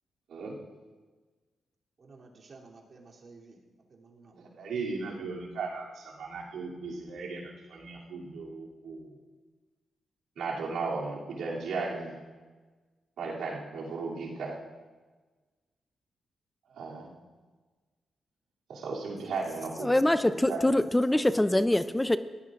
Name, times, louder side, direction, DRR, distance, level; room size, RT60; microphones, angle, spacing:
voice 1, 2.0-3.6 3.9-4.4, right 3 dB, 55° right, -3 dB, 3.1 m, -53 dB
voice 2, 4.3-9.1 10.4-12.1 13.2-14.6 16.7-17.1 18.7-19.9 20.2-20.7, right 4 dB, 90° right, -4 dB, 2.9 m, -36 dB
voice 3, 19.8-22.2, left 1 dB, 10° left, 12 dB, 0.5 m, -24 dB
22.5 x 16.5 x 2.5 m, 1.3 s
cardioid pair, 75°, 0 cm